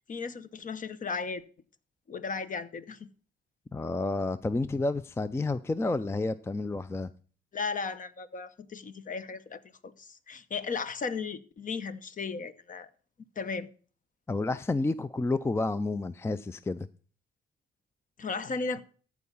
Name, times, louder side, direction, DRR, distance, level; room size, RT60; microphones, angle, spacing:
voice 1, 0.0-1.4 2.1-3.1 7.5-12.9 13.4-13.7 18.2-18.8, left 4 dB, 40° left, 0.9 m, -35 dB
voice 2, 3.7-7.1 14.3-16.9, left 2 dB, 15° left, 0.4 m, -30 dB
14.0 x 4.8 x 5.4 m
cardioid pair, 90°, 20 cm